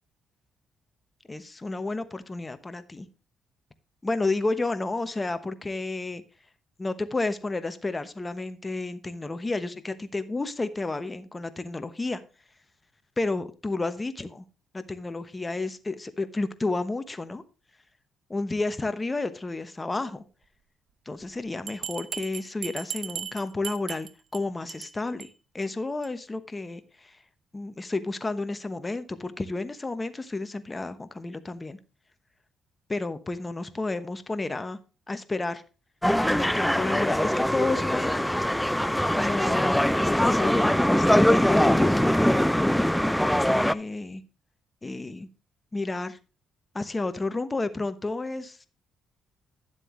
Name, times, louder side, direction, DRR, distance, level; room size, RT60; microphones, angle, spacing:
voice 1, 1.3-3.1 4.0-6.2 6.8-12.2 13.2-14.5 14.7-17.4 18.3-20.2 21.1-27.2 27.5-31.8 32.9-34.8 35.1-35.6 36.3-38.4 39.1-42.0 43.2-44.2 44.8-45.3 45.7-46.2 46.7-48.7, left 3 dB, 20° left, 11 dB, 1.0 m, -31 dB
Bell, 21.7-24.4 24.7-24.9 25.2-25.3 25.6-25.7 26.0-26.1, right 9 dB, 65° right, 0.9 m, -36 dB
sound 1, 36.0-43.7, equal, 5° left, 0.4 m, -22 dB
11.5 x 7.6 x 3.1 m, 0.33 s
cardioid pair, 90°, 0 cm